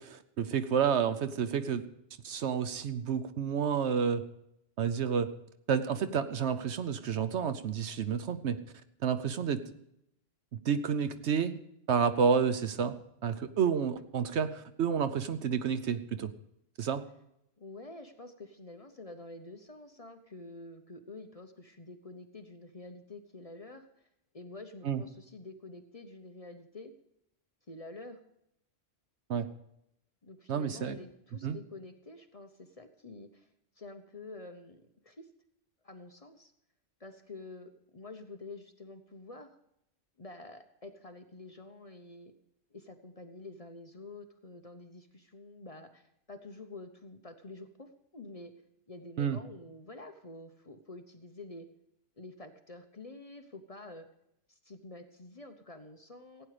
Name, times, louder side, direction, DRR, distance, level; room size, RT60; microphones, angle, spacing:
voice 1, 0.0-1.8 2.2-4.3 4.8-5.3 5.7-8.6 9.0-9.6 10.6-11.6 11.9-16.3 16.8-17.0 24.8-25.0 29.3-29.5 30.5-31.0 31.4-31.6 49.2-49.4, right 7 dB, 65° right, 11 dB, 1.0 m, -30 dB
voice 2, 17.6-24.1 24.3-26.9 27.7-28.2 30.2-33.5 33.8-35.3 35.8-36.5 37.0-39.5 40.2-42.3 42.7-48.5 48.9-51.7 52.2-54.1 54.5-56.5, left 2 dB, 35° left, 6 dB, 0.8 m, -48 dB
15.5 x 9.2 x 4.9 m, 0.78 s
omnidirectional pair, 1.3 m